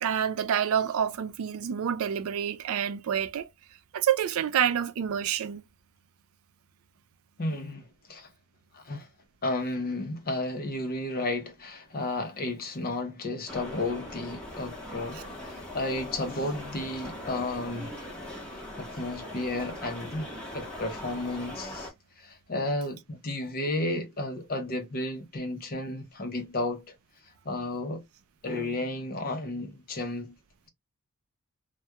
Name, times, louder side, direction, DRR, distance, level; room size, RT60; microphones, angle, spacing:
voice 1, 0.0-3.5 3.9-5.6, right 9 dB, 70° right, 0.3 m, -28 dB
voice 2, 7.4-8.3 8.7-9.1 9.4-15.2 15.4-17.9 18.5-20.3 20.5-21.9 22.2-26.9 27.4-28.0 28.4-30.3, left 2 dB, 40° left, 0.6 m, -33 dB
sound 1, 13.5-21.9, left 1 dB, 5° left, 0.9 m, -40 dB
2.3 x 2.2 x 2.7 m
head